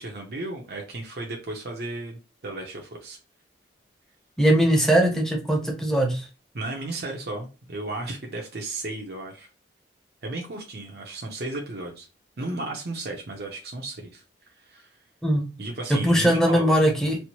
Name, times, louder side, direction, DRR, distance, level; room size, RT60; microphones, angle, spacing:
voice 1, 0.0-3.2 6.5-9.5 10.2-12.1 12.4-14.2 14.6-14.9 15.6-16.8, right 2 dB, 55° right, 0 dB, 0.6 m, -34 dB
voice 2, 4.4-6.3 15.2-15.4 15.9-17.2, right 1 dB, 5° left, 1 dB, 0.7 m, -20 dB
4.2 x 2.0 x 3.0 m, 0.31 s
head